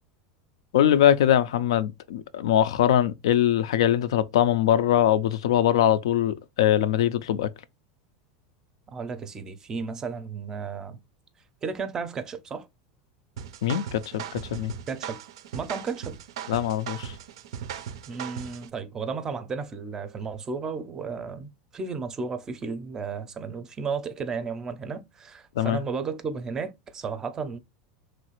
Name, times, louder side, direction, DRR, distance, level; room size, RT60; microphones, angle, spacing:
voice 1, 0.7-7.5 13.6-14.7 16.5-17.1 25.6-25.8, left 11 dB, 90° left, 0.3 m, -22 dB
voice 2, 8.9-11.0 11.6-12.7 14.9-15.2 15.5-16.2 18.1-27.6, right 5 dB, 20° right, 0.4 m, -33 dB
sound 1, 13.4-18.7, right 8 dB, 85° right, 0.4 m, -38 dB
3.0 x 2.4 x 2.9 m
supercardioid pair, 130°, 3 cm